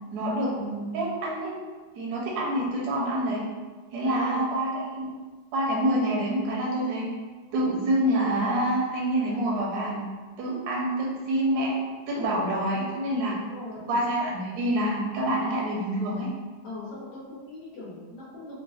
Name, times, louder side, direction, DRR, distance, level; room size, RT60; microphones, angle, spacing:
voice 1, 0.1-1.5 2.0-3.4 3.9-5.1 5.5-7.1 7.5-10.0 10.4-11.7 12.1-13.3 13.9-16.3, right 1 dB, 70° right, -4 dB, 1.0 m, -27 dB
voice 2, 4.0-4.5 11.2-11.3 13.2-14.0 16.6-18.6, left 2 dB, 65° left, -8 dB, 1.2 m, -40 dB
3.9 x 2.1 x 2.3 m, 1.3 s
omnidirectional pair, 2.1 m